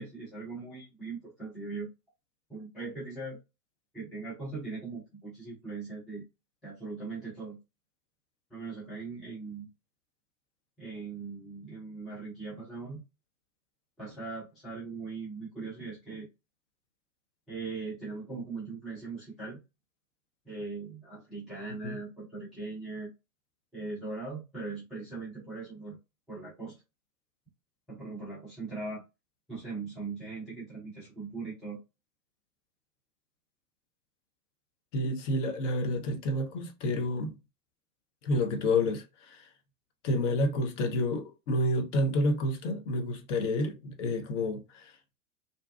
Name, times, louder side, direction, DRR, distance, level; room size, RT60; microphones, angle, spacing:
voice 1, 0.0-1.9 2.5-3.4 3.9-6.2 6.6-7.6 8.5-9.7 10.8-13.0 14.0-16.3 17.5-19.6 20.4-23.1 23.7-26.0 26.3-26.8 27.9-29.0 29.5-31.8, right 3 dB, ahead, 0.3 m, -40 dB
voice 2, 34.9-37.3 38.2-39.5 40.0-44.9, left 1 dB, 45° left, 0.8 m, -29 dB
2.6 x 2.2 x 2.3 m
figure-of-eight pair, 95°, 49 cm